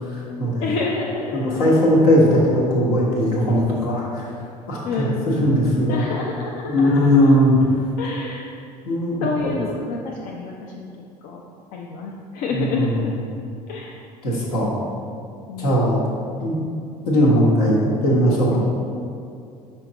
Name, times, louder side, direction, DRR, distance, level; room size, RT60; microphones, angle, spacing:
voice 1, 0.1-0.7 1.3-4.2 4.7-6.1 6.6-7.6 8.8-9.6 12.5-13.0 14.2-14.7 15.6-16.1 16.4-16.6 17.1-17.8 18.0-18.7, equal, 70° left, -5 dB, 1.3 m, -19 dB
voice 2, 0.6-2.1 4.8-7.3 8.0-8.5 9.2-10.9 11.2-11.4 11.7-13.1 13.7-14.0 14.5-14.7 15.5-15.9 18.5-18.7, left 4 dB, 50° left, -1 dB, 0.5 m, -29 dB
5.6 x 4.4 x 3.9 m, 2.5 s
figure-of-eight pair, 60°, 21 cm